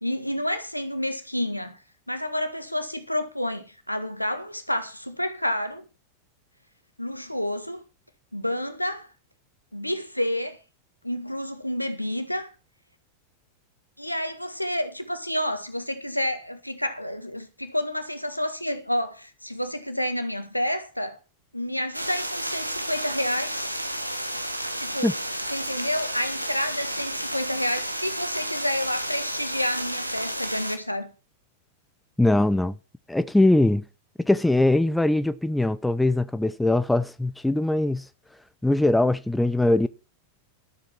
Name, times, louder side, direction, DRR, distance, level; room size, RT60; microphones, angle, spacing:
voice 1, 0.0-1.8 2.1-5.8 7.0-7.8 8.3-9.1 9.7-10.6 11.0-12.5 14.0-21.2 21.5-23.8 24.8-25.2 25.5-31.1, left 1 dB, 90° left, 1.6 m, -29 dB
sound 1, 21.9-30.8, right 1 dB, 90° right, 1.3 m, -31 dB
voice 2, 32.2-32.8 33.1-33.8 34.2-38.1 38.6-39.9, left 2 dB, 5° left, 0.6 m, -21 dB
12.5 x 7.8 x 5.8 m
figure-of-eight pair, 90°, 0 cm